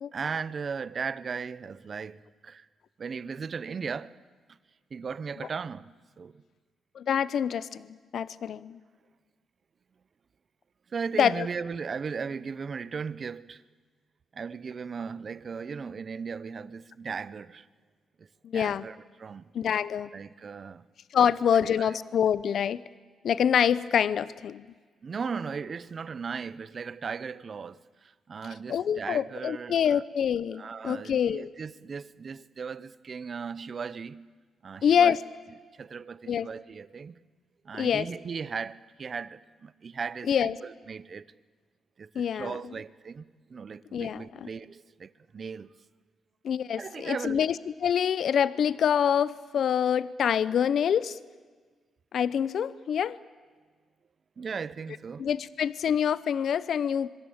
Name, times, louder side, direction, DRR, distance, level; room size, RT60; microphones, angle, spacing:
voice 1, 0.1-2.7 3.0-4.1 4.9-6.4 10.9-13.6 14.3-17.7 18.2-19.5 20.1-20.9 21.3-21.4 21.8-22.0 25.0-30.0 30.5-34.3 34.6-35.2 35.7-37.2 37.6-41.3 42.0-45.7 46.8-47.4 54.4-55.3, right 5 dB, 35° right, 0.8 m, -37 dB
voice 2, 6.9-8.8 11.2-11.5 18.4-18.9 19.5-20.1 21.1-22.8 23.2-24.6 28.7-31.5 34.8-35.2 36.3-36.5 37.8-38.1 40.3-40.5 42.2-42.6 43.9-44.5 46.4-51.2 52.1-53.2 55.2-57.1, left 8 dB, 55° left, 0.7 m, -26 dB
26.0 x 23.5 x 8.7 m
cardioid pair, 150°, 0 cm